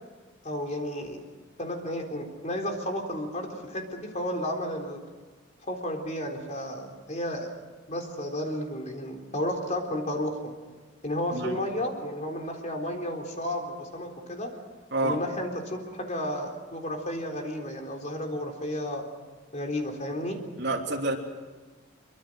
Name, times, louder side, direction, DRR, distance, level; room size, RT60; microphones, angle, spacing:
voice 1, 0.4-1.2 1.6-5.0 5.7-7.5 7.9-10.5 11.0-14.5 15.0-19.0 19.5-20.4, left 1 dB, 40° left, 2 dB, 3.8 m, -32 dB
voice 2, 20.6-21.2, right 2 dB, 60° right, 2 dB, 3.1 m, -28 dB
24.5 x 24.5 x 6.3 m, 1.4 s
head